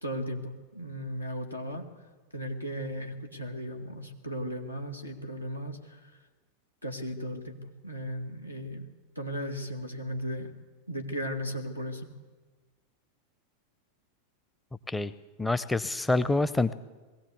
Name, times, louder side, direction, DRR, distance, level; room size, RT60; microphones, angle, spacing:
voice 1, 0.0-1.8 2.3-6.1 6.8-8.9 9.2-10.5 10.9-12.1, equal, 85° left, 2 dB, 2.3 m, -36 dB
voice 2, 15.4-16.7, left 2 dB, 10° left, 14 dB, 0.6 m, -26 dB
21.0 x 16.5 x 8.2 m, 1.3 s
figure-of-eight pair, 90°, 0 cm